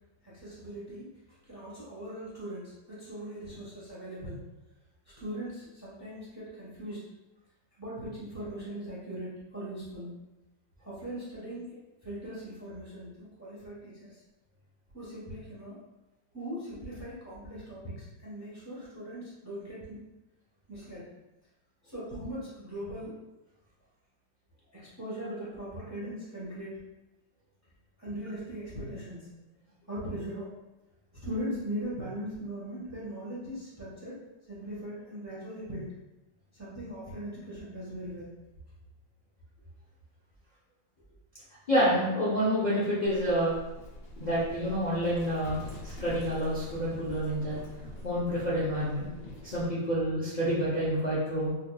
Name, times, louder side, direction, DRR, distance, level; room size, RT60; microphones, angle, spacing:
voice 1, 0.2-1.0 1.5-4.4 5.2-7.0 7.8-10.1 10.8-14.1 14.9-15.8 16.3-20.0 20.7-21.1 21.8-23.2 24.7-26.8 28.0-29.3 29.9-30.5 31.2-35.9 36.5-38.3, equal, 15° right, -8 dB, 0.7 m, -40 dB
voice 2, 41.7-43.5 44.2-45.6 45.8-47.6 48.0-49.1 49.4-51.5, equal, 75° left, -10 dB, 0.4 m, -28 dB
Livestock farm animals working animals, 43.0-49.7, left 1 dB, 90° left, 1.7 m, -44 dB
4.4 x 2.6 x 2.3 m, 1.0 s
omnidirectional pair, 2.0 m